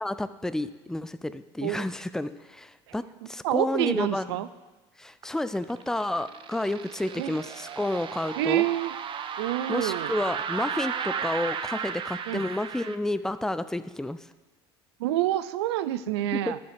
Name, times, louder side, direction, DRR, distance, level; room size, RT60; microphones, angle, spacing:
voice 1, 0.0-4.5 5.0-8.6 9.7-14.2 16.3-16.6, left 1 dB, 5° left, 13 dB, 0.4 m, -30 dB
voice 2, 3.4-4.5 7.2-7.4 8.4-9.0 9.4-10.2 12.3-12.4 15.0-16.6, right 14 dB, 85° right, 14 dB, 0.4 m, -27 dB
sound 1, 5.2-13.0, right 7 dB, 40° right, 0.6 m, -35 dB
11.5 x 6.6 x 3.5 m, 1.2 s
hypercardioid pair, 80°, 14 cm